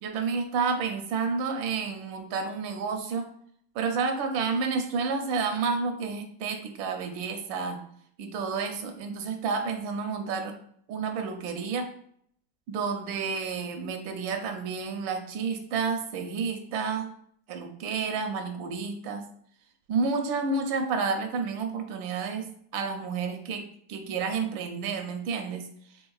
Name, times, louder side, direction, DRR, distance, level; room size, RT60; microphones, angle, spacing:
voice 1, 0.0-3.3 3.7-7.8 8.2-10.5 10.9-11.9 12.7-17.1 17.5-19.2 19.9-22.5 22.7-23.6 23.9-25.6, right 5 dB, 85° right, 5 dB, 1.4 m, -30 dB
4.5 x 3.4 x 2.3 m, 0.64 s
omnidirectional pair, 2.0 m